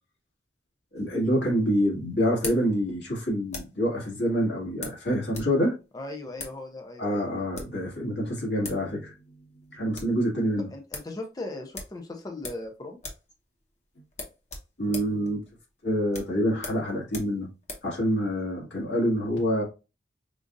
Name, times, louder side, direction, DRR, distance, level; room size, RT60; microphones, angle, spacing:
voice 1, 0.9-5.7 7.0-9.1 9.7-10.7 14.8-15.4 15.8-17.5 17.8-19.6, equal, 75° left, 1.9 m, -26 dB
sound 1, 1.0-3.9 4.8-5.6 5.8-5.9 6.3-6.6 7.3-7.8 8.4-8.5 8.6-8.9 9.2-9.3 9.6-10.2 10.5-10.6 10.9-11.1 11.7-12.7 13.0-13.3 13.6-13.7 14.1-17.9, left 3 dB, 40° left, 1.0 m, -41 dB
voice 2, 5.9-7.3 10.7-13.0, left 2 dB, 20° left, 0.5 m, -38 dB
5.1 x 2.4 x 2.5 m
head